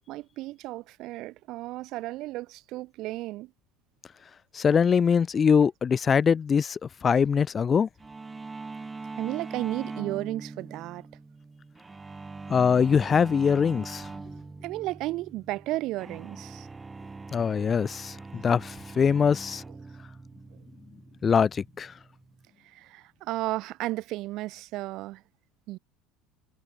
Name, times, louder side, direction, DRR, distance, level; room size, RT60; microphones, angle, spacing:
voice 1, 0.1-3.5 9.2-11.1 14.6-16.7 22.6-25.2 25.7-25.8, right 18 dB, 55° right, 0.5 m, -34 dB
voice 2, 4.5-7.9 12.5-14.0 17.3-19.6 21.2-21.9, left 6 dB, 30° left, 0.4 m, -23 dB
sound 1, 8.0-22.5, right 3 dB, 20° right, 5.9 m, -42 dB
hypercardioid pair, 70°, 0 cm